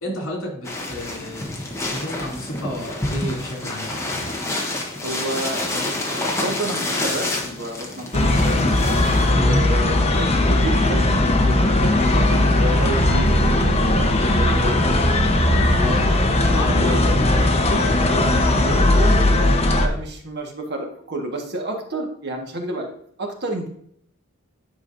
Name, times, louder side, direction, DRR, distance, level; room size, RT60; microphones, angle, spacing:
voice 1, 0.0-1.5 1.8-4.3 9.3-9.7 15.7-16.2 16.5-17.4, equal, 70° left, 0 dB, 3.1 m, -29 dB
sound 1, 0.6-9.3, left 2 dB, 15° left, 1.3 m, -28 dB
voice 2, 5.0-8.7 9.2-11.6 12.1-14.8 15.5-15.9 16.5-17.2 18.6-22.9 23.2-23.7, right 1 dB, 55° right, 2 dB, 1.5 m, -30 dB
sound 2, 8.1-19.9, left 1 dB, 30° left, 0.9 m, -18 dB
10.5 x 5.7 x 2.6 m, 0.66 s
head